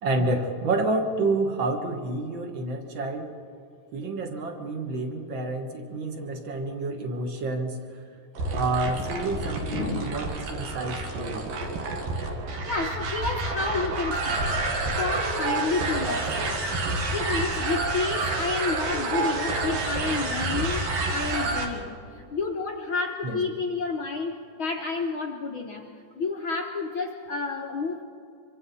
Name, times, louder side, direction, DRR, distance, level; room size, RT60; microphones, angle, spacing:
voice 1, 0.0-3.3 3.9-7.8 8.5-11.5 23.2-23.4, right 2 dB, 50° right, 5 dB, 1.6 m, -29 dB
sound 1, 8.3-21.7, right 3 dB, 90° right, 3.6 m, -29 dB
voice 2, 9.3-10.2 12.7-14.6 15.0-16.6 17.1-25.8 26.1-28.0, left 4 dB, 65° left, 1 dB, 1.2 m, -30 dB
25.5 x 24.5 x 4.2 m, 2.4 s
omnidirectional pair, 3.9 m